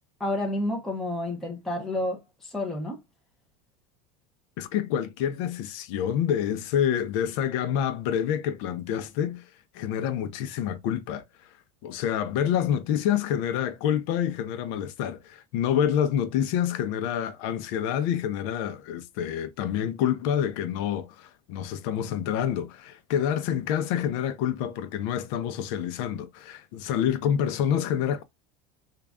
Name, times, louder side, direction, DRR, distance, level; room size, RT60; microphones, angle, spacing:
voice 1, 0.2-3.0, left 1 dB, ahead, 0.7 m, -30 dB
voice 2, 4.6-9.5 9.7-11.2 11.8-28.2, left 9 dB, 60° left, 0.7 m, -27 dB
3.8 x 2.4 x 3.4 m
cardioid pair, 155°, 18 cm